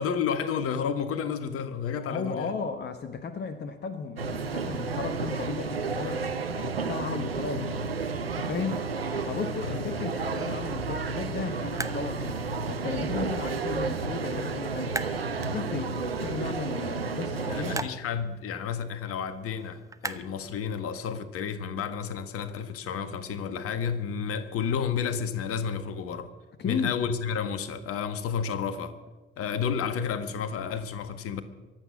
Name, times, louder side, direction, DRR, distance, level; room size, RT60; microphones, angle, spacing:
voice 1, 0.0-2.5 9.6-9.8 17.5-26.3 26.6-28.9 29.4-31.4, left 7 dB, 50° left, 12 dB, 1.5 m, -31 dB
voice 2, 2.0-6.2 6.5-7.7 8.4-8.9 9.3-12.4 12.7-15.0 15.4-17.8 26.6-27.0, left 5 dB, 35° left, 9 dB, 1.2 m, -34 dB
sound 1, 4.2-17.8, right 4 dB, 85° right, 0.8 m, -31 dB
sound 2, 7.9-21.1, right 3 dB, 10° right, 1.0 m, -44 dB
23.5 x 8.3 x 7.5 m, 1.3 s
figure-of-eight pair, 55°, 29 cm